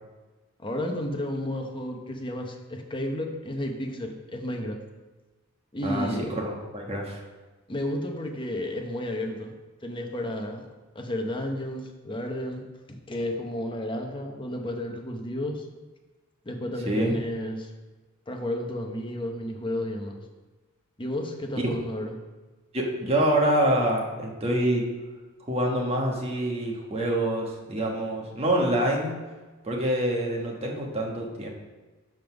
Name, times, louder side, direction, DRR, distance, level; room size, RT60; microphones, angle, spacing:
voice 1, 0.6-4.8 5.7-6.3 7.7-9.5 9.8-10.7 10.9-15.7 16.4-17.7 18.3-20.2 21.0-22.1, left 1 dB, 25° left, 3 dB, 0.9 m, -32 dB
voice 2, 5.8-7.2 16.8-17.1 21.5-21.6 22.7-24.9 25.5-29.1 29.6-31.5, right 1 dB, 30° right, -1 dB, 1.3 m, -26 dB
5.7 x 5.2 x 5.9 m, 1.2 s
head